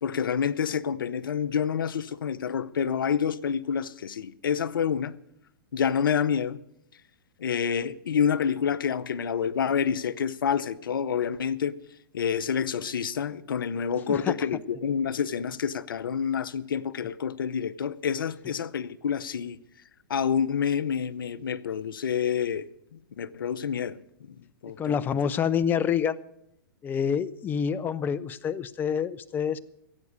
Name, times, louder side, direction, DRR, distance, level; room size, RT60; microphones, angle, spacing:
voice 1, 0.0-5.2 5.7-6.6 7.4-11.7 12.1-19.6 20.1-24.0 24.6-25.0, left 7 dB, 80° left, 0.7 m, -28 dB
voice 2, 24.8-26.2 26.8-29.6, left 7 dB, 15° left, 0.5 m, -27 dB
16.0 x 8.2 x 8.1 m
hypercardioid pair, 125°, 11 cm